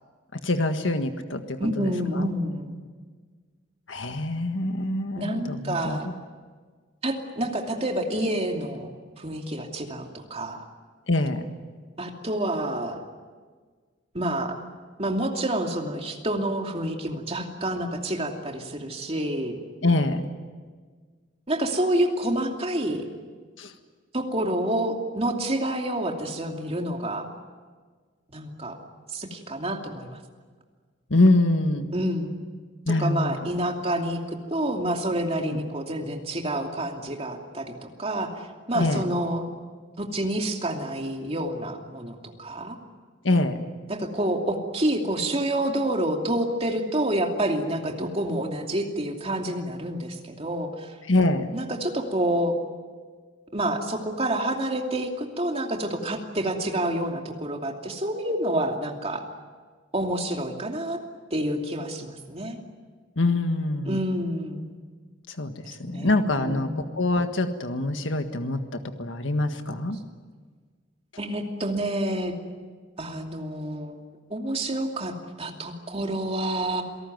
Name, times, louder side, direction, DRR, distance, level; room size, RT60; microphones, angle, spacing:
voice 1, 0.4-2.3 3.9-6.0 11.1-11.4 19.8-20.2 23.6-23.7 31.1-31.9 32.8-33.3 35.4-35.6 38.7-39.0 43.2-43.7 51.1-51.5 63.2-64.0 65.3-68.6 69.0-70.0, left 2 dB, 75° left, 7 dB, 1.7 m, -24 dB
voice 2, 1.6-2.7 5.2-6.1 7.0-8.9 9.2-10.7 12.0-13.0 14.1-14.6 15.0-19.6 21.5-23.0 24.1-27.3 28.3-28.8 29.1-30.2 31.9-32.4 32.9-38.4 38.7-39.4 40.0-42.8 43.9-50.9 51.5-52.6 53.5-59.2 59.9-61.0 61.3-62.6 63.9-64.7 65.8-66.7 71.2-72.3 73.0-74.0 74.3-76.8, right 1 dB, 30° right, 3 dB, 2.7 m, -28 dB
28.0 x 18.5 x 9.4 m, 1.5 s
head